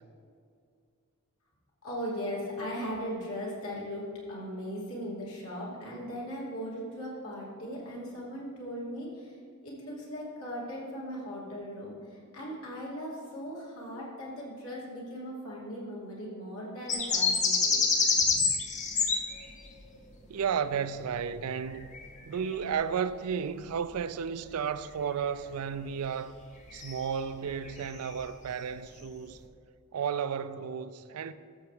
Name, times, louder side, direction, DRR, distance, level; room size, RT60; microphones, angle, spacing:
voice 1, 1.8-9.4 9.6-17.9 18.2-18.5, equal, 75° left, 2.7 m, -38 dB
sound 1, 16.9-19.8 21.6-22.1 22.5-22.6 26.8-27.1 27.5-27.7 28.0-28.1, left 4 dB, 35° left, 0.8 m, -27 dB
voice 2, 20.3-21.9 22.3-26.3 26.7-29.4 29.9-31.3, right 7 dB, 90° right, 0.4 m, -33 dB
13.5 x 6.9 x 3.3 m
head